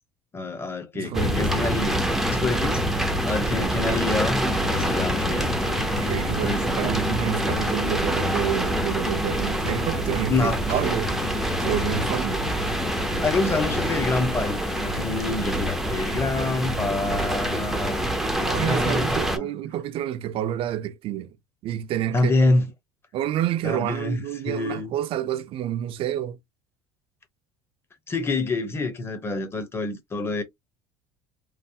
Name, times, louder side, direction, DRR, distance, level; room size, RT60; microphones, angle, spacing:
voice 1, 0.3-2.0 2.3-2.8 3.2-6.1 6.4-6.9 10.3-10.8 13.2-19.5 22.1-22.7 23.6-24.2 24.5-24.9 28.1-30.4, left 2 dB, 20° left, 0.9 m, -27 dB
voice 2, 0.9-1.4 5.9-11.1 11.6-12.4 18.2-21.4 21.6-22.5 23.1-26.4, right 11 dB, 50° right, 0.5 m, -29 dB
sound 1, 1.1-19.4, right 1 dB, 5° right, 0.6 m, -26 dB
sound 2, 4.4-15.2, left 9 dB, 75° left, 0.8 m, -38 dB
3.2 x 2.0 x 2.7 m
supercardioid pair, 110°, 12 cm